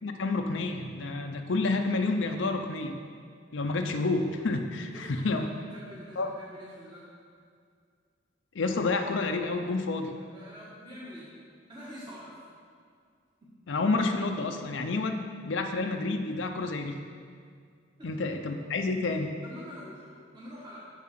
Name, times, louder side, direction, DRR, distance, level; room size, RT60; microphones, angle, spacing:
voice 1, 0.0-3.0 3.5-5.5 6.2-6.3 8.5-10.1 13.7-17.0 18.0-19.3, left 3 dB, 75° left, 4 dB, 0.6 m, -29 dB
voice 2, 4.9-7.1 10.2-11.3 11.7-12.4 13.4-13.5 18.0-18.1 19.4-20.9, equal, 25° right, -8 dB, 1.4 m, -46 dB
7.4 x 7.4 x 5.9 m, 2.1 s
head